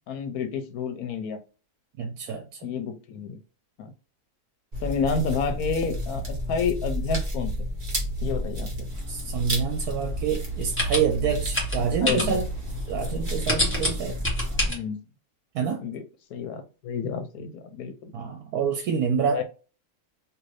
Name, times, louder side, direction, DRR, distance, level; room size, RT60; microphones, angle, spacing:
voice 1, 0.1-1.4 2.6-3.4 3.8-3.9 4.8-7.5 8.2-8.7 12.0-12.4 14.7-15.0 15.8-16.0 16.3-18.1 19.2-19.4, left 5 dB, 75° left, 1.1 m, -30 dB
voice 2, 2.0-2.7 8.6-8.7 9.1-12.5 12.9-14.2 15.5-15.9 18.1-19.4, right 7 dB, 80° right, 1.1 m, -27 dB
sound 1, 4.7-14.7, equal, 30° right, 1.1 m, -31 dB
sound 2, 8.9-14.7, left 1 dB, 10° left, 0.9 m, -30 dB
2.7 x 2.6 x 3.2 m
omnidirectional pair, 1.6 m